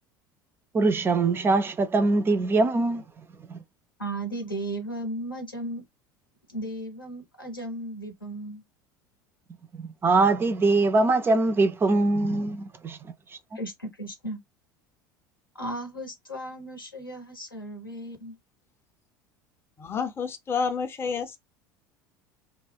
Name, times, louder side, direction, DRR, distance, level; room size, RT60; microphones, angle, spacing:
voice 1, 0.7-3.0 3.5-3.6 9.7-13.1, right 3 dB, 20° right, 0.3 m, -23 dB
voice 2, 4.0-5.8 6.5-8.6 13.5-14.4 15.5-18.4, right 1 dB, 90° left, 0.9 m, -35 dB
voice 3, 19.8-21.4, left 5 dB, 20° left, 0.6 m, -29 dB
2.3 x 2.1 x 3.3 m
figure-of-eight pair, 70°, 11 cm